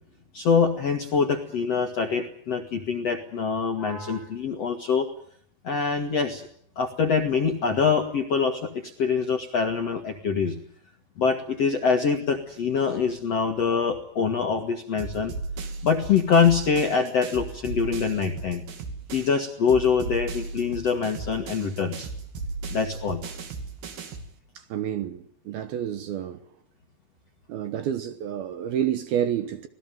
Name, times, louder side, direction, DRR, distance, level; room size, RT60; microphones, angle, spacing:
voice 1, 0.3-5.1 5.6-6.4 6.7-10.5 11.2-15.3 15.8-18.6 19.1-22.1 22.7-23.2, left 5 dB, 60° left, 1.6 m, -24 dB
sound 1, 15.0-19.4 19.7-24.3, right 3 dB, 55° right, 4.0 m, -36 dB
voice 2, 24.7-26.4 27.5-29.7, right 10 dB, 70° right, 2.4 m, -29 dB
25.5 x 18.5 x 9.2 m
omnidirectional pair, 5.5 m